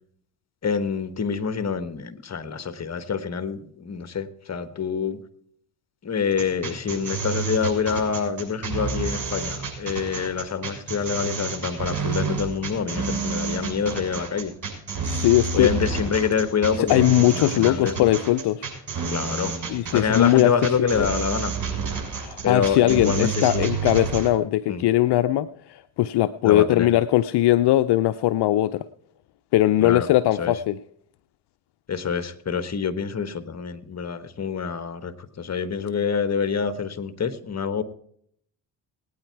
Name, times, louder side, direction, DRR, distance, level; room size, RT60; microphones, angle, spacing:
voice 1, 0.6-5.2 6.0-14.5 15.5-18.1 19.1-19.5 19.9-21.5 22.4-23.7 24.7-24.8 26.4-26.9 29.8-30.1 30.4-30.5 31.9-37.8, left 6 dB, 35° left, 10 dB, 1.4 m, -26 dB
sound 1, 6.3-24.3, right 5 dB, 45° right, 6.7 m, -29 dB
voice 2, 15.0-15.7 16.8-18.7 19.7-21.1 22.1-28.8 29.5-30.8, left 14 dB, 65° left, 13 dB, 0.6 m, -20 dB
19.0 x 9.4 x 4.7 m, 0.68 s
supercardioid pair, 60°, 43 cm